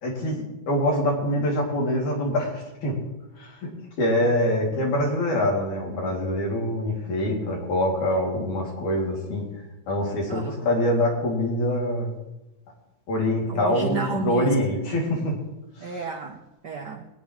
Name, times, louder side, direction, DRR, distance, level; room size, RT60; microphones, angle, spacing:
voice 1, 0.0-3.0 3.4-3.7 4.0-9.5 9.9-12.1 13.1-15.4 15.8-16.0, left 1 dB, 90° left, -2 dB, 4.2 m, -25 dB
voice 2, 10.3-10.7 13.5-14.7 15.8-17.1, right 6 dB, 80° right, 2 dB, 0.9 m, -32 dB
23.5 x 9.6 x 3.2 m, 0.97 s
omnidirectional pair, 3.3 m